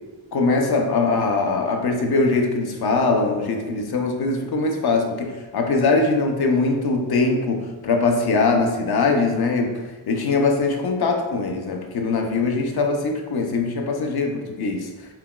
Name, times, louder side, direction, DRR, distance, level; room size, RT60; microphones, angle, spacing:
voice 1, 0.3-14.9, left 3 dB, 55° left, 2 dB, 0.5 m, -22 dB
5.6 x 2.2 x 2.3 m, 1.3 s
wide cardioid pair, 165°, 48 cm